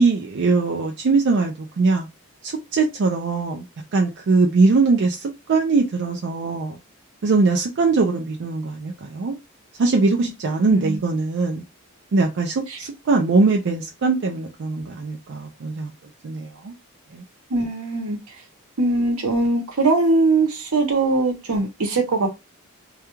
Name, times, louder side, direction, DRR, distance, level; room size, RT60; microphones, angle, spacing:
voice 1, 0.0-2.1 2.4-3.6 3.9-6.8 7.2-9.3 9.8-11.6 12.1-15.9 16.2-16.7 17.1-17.2, right 3 dB, 55° right, 0.4 m, -21 dB
voice 2, 10.7-11.0 17.5-18.2 18.8-22.3, right 3 dB, 80° right, 0.9 m, -21 dB
2.3 x 2.2 x 2.9 m
head